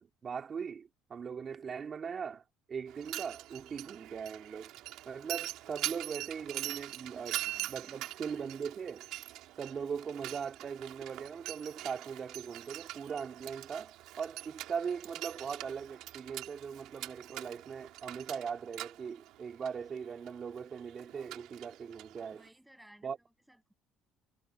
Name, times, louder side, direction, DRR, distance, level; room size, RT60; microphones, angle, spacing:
voice 1, 0.0-2.4 2.7-4.7 5.0-9.1 9.6-22.4 23.0-23.2, right 6 dB, 35° right, 2.5 m, -40 dB
Mechanisms, 2.9-22.5, right 15 dB, 70° right, 3.6 m, -43 dB
voice 2, 7.5-8.4 22.3-23.7, equal, 5° right, 7.4 m, -61 dB
cardioid pair, 110°, 0 cm